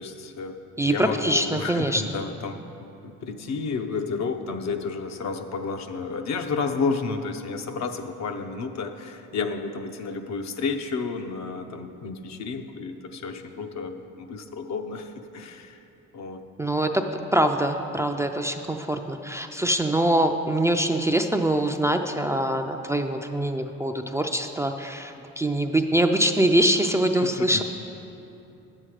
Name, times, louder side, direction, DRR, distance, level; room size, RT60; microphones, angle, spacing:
voice 1, 0.0-2.6 3.0-15.8 16.1-16.4 27.2-27.3, left 4 dB, 65° left, 6 dB, 0.7 m, -31 dB
voice 2, 0.8-2.0 16.6-17.0 17.3-27.6, right 1 dB, 10° right, 5 dB, 0.4 m, -24 dB
9.5 x 7.6 x 4.8 m, 2.9 s
cardioid pair, 90°, 30 cm